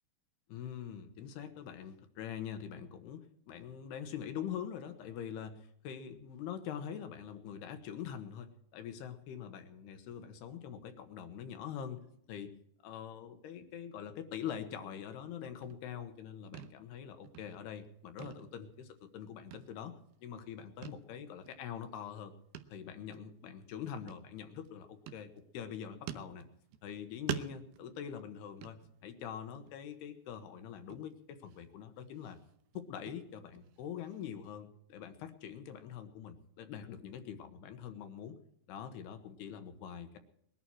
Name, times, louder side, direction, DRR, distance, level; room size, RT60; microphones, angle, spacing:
voice 1, 0.5-12.0 12.3-12.6 12.8-19.9 20.2-22.3 22.7-26.5 26.8-32.4 32.7-38.4 38.7-40.2, left 8 dB, 70° left, 8 dB, 2.9 m, -44 dB
sound 1, 15.4-16.3 16.5-17.0 17.2-17.9 18.2-19.2 19.5-20.2 20.8-21.1 21.4-21.5 22.5-22.9 23.1-23.3 24.1-24.7 25.1-25.7 26.1-26.9 27.3-29.3 29.7-30.0 30.3-30.4 30.9-31.6 32.0-34.5, right 12 dB, 80° right, 2.3 m, -46 dB
21.0 x 11.5 x 4.6 m, 0.71 s
omnidirectional pair, 5.3 m